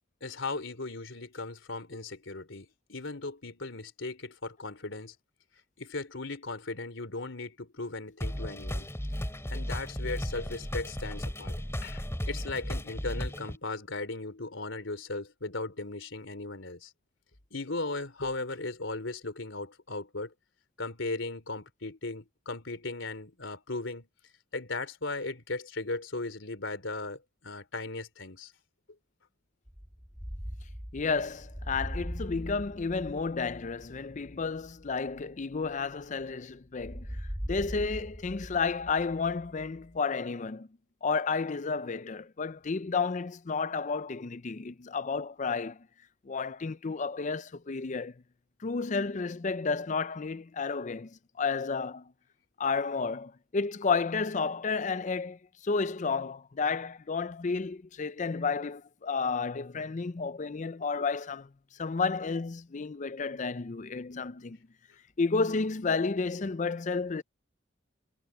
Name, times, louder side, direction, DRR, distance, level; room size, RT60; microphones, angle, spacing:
voice 1, 0.2-5.1 5.8-8.9 9.5-11.5 11.8-16.9 17.5-20.3 20.8-24.1 24.5-28.5, left 3 dB, 75° left, 3.2 m, -37 dB
sound 1, 8.2-13.6, equal, 15° left, 3.1 m, -35 dB
sound 2, 29.7-36.3 36.8-40.0, equal, 10° right, 2.3 m, -41 dB
voice 2, 30.9-37.1 37.5-40.7 41.0-45.8 46.3-48.1 48.6-52.1 52.6-61.5 61.8-64.6 65.2-67.2, left 4 dB, 40° left, 0.5 m, -31 dB
head